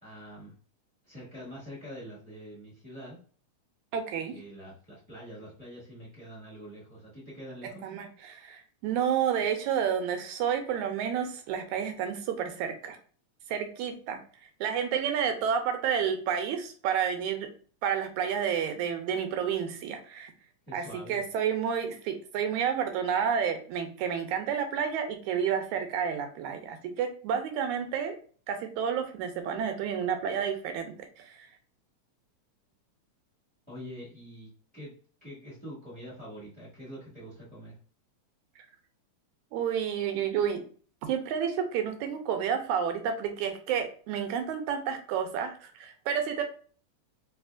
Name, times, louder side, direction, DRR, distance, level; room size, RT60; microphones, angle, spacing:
voice 1, 0.0-0.5 1.0-3.2 4.3-7.9 20.7-21.2 33.7-34.9 35.2-37.7, equal, 5° left, -8 dB, 1.1 m, -45 dB
voice 2, 3.9-4.3 7.8-13.0 13.5-14.2 14.6-17.5 17.8-20.3 20.7-28.2 28.5-31.4 39.5-40.6 41.0-46.4, right 8 dB, 85° right, 6 dB, 2.0 m, -30 dB
4.3 x 3.3 x 2.3 m, 0.42 s
omnidirectional pair, 3.4 m